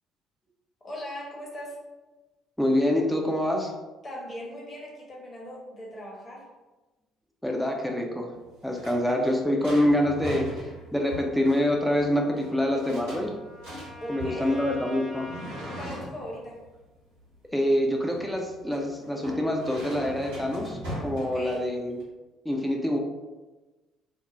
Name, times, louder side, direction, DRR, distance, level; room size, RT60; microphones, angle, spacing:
voice 1, 0.8-1.8 4.0-6.5 14.0-14.6 15.8-16.6 21.2-21.6, equal, 30° left, -3 dB, 0.9 m, -39 dB
voice 2, 2.6-3.7 7.4-8.4 8.6-13.3 14.1-15.3 17.5-22.0 22.4-23.0, left 1 dB, ahead, 0 dB, 0.5 m, -26 dB
sound 1, 8.3-22.0, equal, 70° right, 1.0 m, -41 dB
Trumpet, 11.4-15.9, right 1 dB, 35° right, 0.8 m, -46 dB
2.5 x 2.0 x 3.1 m, 1.1 s
figure-of-eight pair, 50°, 0 cm